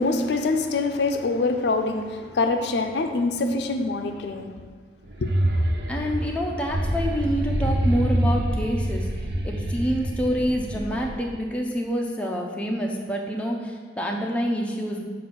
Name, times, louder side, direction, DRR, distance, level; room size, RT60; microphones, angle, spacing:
voice 1, 0.0-4.5 5.2-5.3, left 3 dB, 70° left, 6 dB, 0.4 m, -24 dB
sound 1, 5.0-11.4, right 1 dB, 65° right, 0.7 m, -26 dB
voice 2, 5.9-9.1 9.4-15.0, equal, 5° left, -1 dB, 0.5 m, -27 dB
7.1 x 2.6 x 5.6 m, 1.5 s
head